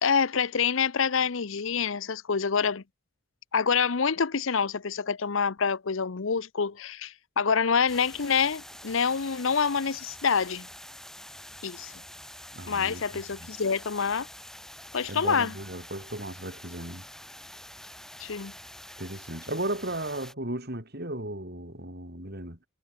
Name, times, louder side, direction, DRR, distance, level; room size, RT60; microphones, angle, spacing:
voice 1, 0.0-2.8 3.5-10.7 11.6-11.9 12.7-14.3 14.9-15.5 18.2-18.5, left 6 dB, 65° left, 0.7 m, -26 dB
sound 1, 7.9-20.3, left 1 dB, ahead, 7.8 m, -46 dB
voice 2, 12.5-13.0 13.4-13.5 15.1-17.0 19.0-22.6, right 1 dB, 50° right, 5.8 m, -35 dB
head